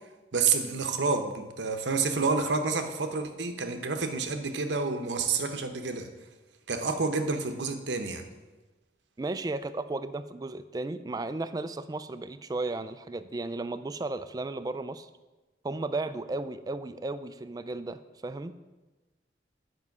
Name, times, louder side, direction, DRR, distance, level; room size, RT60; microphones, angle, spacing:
voice 1, 0.3-6.1 6.7-8.3, right 4 dB, 85° right, 7 dB, 0.9 m, -29 dB
voice 2, 9.2-15.1 15.6-18.5, right 2 dB, 20° right, 13 dB, 0.3 m, -34 dB
9.5 x 5.4 x 5.9 m, 1.2 s
head